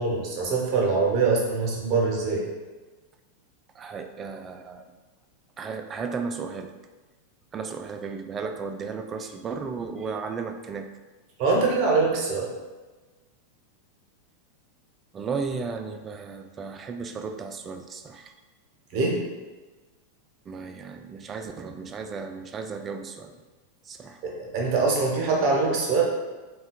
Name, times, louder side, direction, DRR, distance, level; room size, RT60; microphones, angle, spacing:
voice 1, 0.0-2.4 11.4-12.5 18.9-19.2 24.2-26.0, right 4 dB, 40° right, -2 dB, 1.0 m, -23 dB
voice 2, 3.7-4.8 5.6-6.7 7.5-10.9 15.1-18.3 20.5-23.4 23.8-24.2, right 5 dB, 25° right, 6 dB, 0.3 m, -34 dB
3.8 x 2.3 x 4.1 m, 1.2 s
figure-of-eight pair, 90°, 0 cm